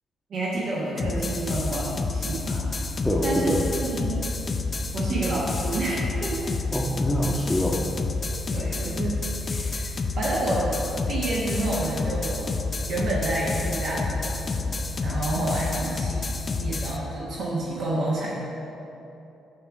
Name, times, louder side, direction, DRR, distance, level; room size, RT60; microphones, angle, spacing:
voice 1, 0.3-2.7 3.2-3.5 3.8-4.2 4.9-6.6 8.5-10.8 11.1-16.3 16.6-18.4, right 2 dB, 60° right, -5 dB, 1.1 m, -29 dB
sound 1, 1.0-17.0, left 3 dB, 40° left, 0.5 m, -29 dB
voice 2, 3.0-3.6 6.7-7.8, left 1 dB, 10° left, -3 dB, 0.8 m, -25 dB
8.0 x 3.5 x 6.1 m, 2.9 s
hypercardioid pair, 45°, 0 cm